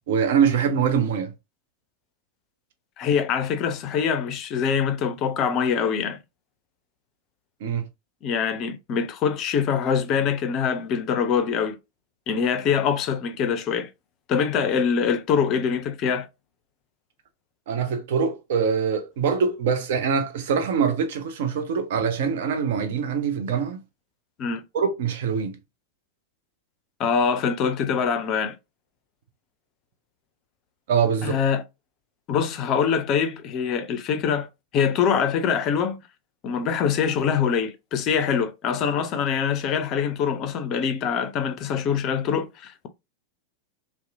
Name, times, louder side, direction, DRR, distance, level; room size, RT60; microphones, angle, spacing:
voice 1, 0.1-1.3 7.6-7.8 17.7-23.8 24.7-25.6 30.9-31.4, right 6 dB, 55° right, 0.5 m, -24 dB
voice 2, 3.0-6.2 8.2-11.8 12.3-13.9 14.3-16.3 24.4-24.6 27.0-28.6 31.2-31.6 32.3-34.5 34.7-36.0 36.4-42.9, left 7 dB, 35° left, 0.4 m, -24 dB
2.7 x 2.0 x 2.5 m
figure-of-eight pair, 90°, 0 cm